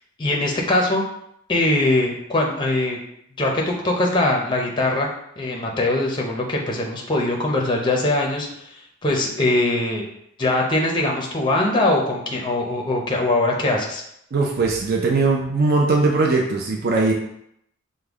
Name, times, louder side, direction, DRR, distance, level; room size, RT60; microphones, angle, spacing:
voice 1, 0.2-1.0 1.5-3.0 3.4-5.1 5.4-8.5 9.0-10.0 10.4-14.0, left 2 dB, 20° left, 0 dB, 0.5 m, -21 dB
voice 2, 14.3-17.1, right 3 dB, 50° right, 0 dB, 0.5 m, -20 dB
5.1 x 2.1 x 3.5 m, 0.75 s
head